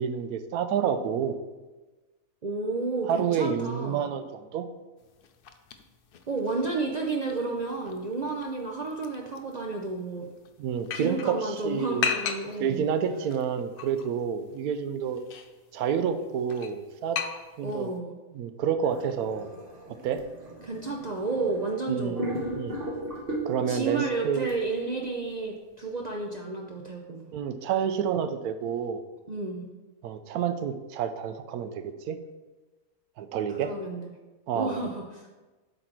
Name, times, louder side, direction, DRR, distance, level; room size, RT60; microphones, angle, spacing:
voice 1, 0.0-1.4 3.1-4.7 10.6-12.1 12.6-15.2 15.7-17.2 17.6-17.9 18.3-19.5 20.0-20.2 21.9-22.3 22.6-22.8 23.4-24.5 27.3-29.0 30.0-32.2 33.2-33.7 34.5-34.9, right 7 dB, 80° right, 10 dB, 1.1 m, -29 dB
voice 2, 2.4-4.1 6.3-10.3 10.9-12.9 17.6-18.1 20.6-22.3 23.7-27.3 29.3-29.7 33.5-34.1 34.5-35.3, right 3 dB, 60° right, 0 dB, 0.4 m, -31 dB
sound 1, 5.0-18.0, left 7 dB, 75° left, 0.5 m, -39 dB
sound 2, 18.8-21.8 22.2-23.9 24.5-24.6, right 1 dB, 40° right, 1.2 m, -36 dB
7.7 x 4.1 x 4.5 m, 1.2 s
omnidirectional pair, 1.6 m